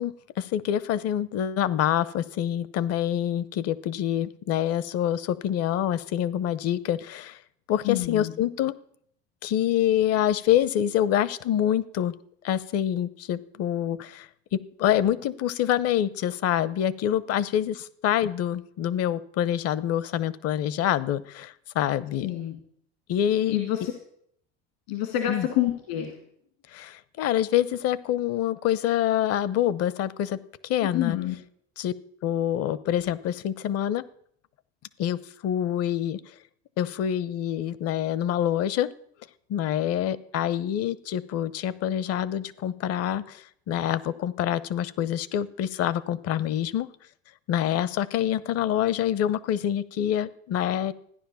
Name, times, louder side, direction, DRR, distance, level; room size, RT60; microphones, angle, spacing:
voice 1, 0.0-7.4 7.7-8.7 9.4-12.1 12.4-22.3 23.1-23.6 25.3-25.5 26.7-30.4 30.6-31.2 31.8-31.9 32.2-34.0 35.0-36.2 36.8-38.9 39.5-46.9 47.5-50.9, left 11 dB, 55° left, 19 dB, 0.9 m, -26 dB
voice 2, 7.8-8.3 22.2-22.6 23.5-23.9 24.9-26.2 30.9-31.3, left 12 dB, 75° left, 5 dB, 2.3 m, -27 dB
14.5 x 10.0 x 7.0 m, 0.69 s
hypercardioid pair, 85°, 30 cm